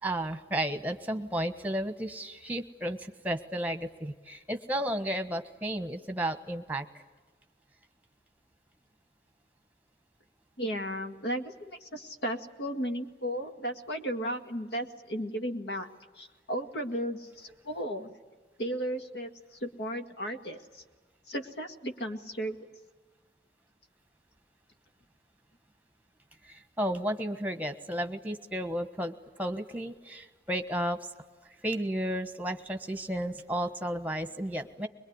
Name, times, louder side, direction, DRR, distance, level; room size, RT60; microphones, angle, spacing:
voice 1, 0.0-6.8 26.4-31.0 31.6-34.9, right 1 dB, 10° right, 9 dB, 1.3 m, -33 dB
voice 2, 10.6-15.9 16.2-18.1 18.6-20.8 21.3-22.6, equal, 70° left, 6 dB, 2.0 m, -35 dB
22.5 x 22.0 x 9.6 m, 1.3 s
head